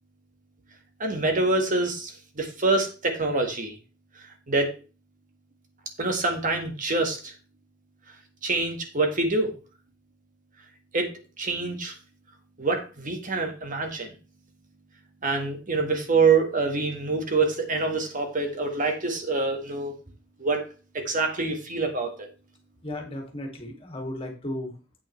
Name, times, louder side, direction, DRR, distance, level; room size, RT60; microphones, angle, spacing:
voice 1, 1.0-3.7 4.5-4.7 6.0-7.3 8.4-9.5 10.9-11.1 11.4-11.9 12.6-14.1 15.2-20.0 20.4-20.7 20.9-22.3, right 3 dB, 45° right, 4 dB, 1.6 m, -25 dB
voice 2, 22.8-25.0, left 1 dB, 30° left, 2 dB, 2.3 m, -35 dB
8.7 x 8.6 x 3.3 m, 0.33 s
head